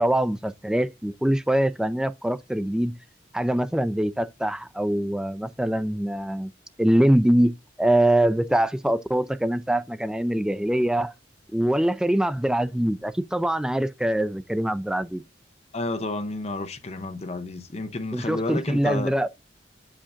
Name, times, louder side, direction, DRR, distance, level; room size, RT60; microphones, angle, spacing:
voice 1, 0.0-2.9 3.3-6.5 6.8-7.5 7.8-11.1 11.5-15.2 18.1-19.3, right 1 dB, 5° right, 0.4 m, -23 dB
voice 2, 15.7-19.1, left 2 dB, 35° left, 0.7 m, -31 dB
8.4 x 5.0 x 2.5 m
head